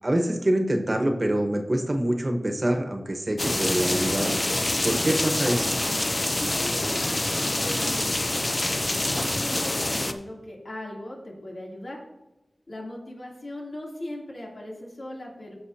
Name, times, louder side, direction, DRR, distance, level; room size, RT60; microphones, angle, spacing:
voice 1, 0.0-4.4 4.8-5.7, right 1 dB, 35° right, 4 dB, 1.2 m, -25 dB
sound 1, 3.4-10.1, left 1 dB, 35° left, 0.7 m, -26 dB
voice 2, 6.4-8.6 9.1-12.0 12.7-15.5, left 1 dB, 65° left, -3 dB, 3.1 m, -39 dB
15.5 x 6.6 x 2.8 m, 0.97 s
wide cardioid pair, 70°, 0 cm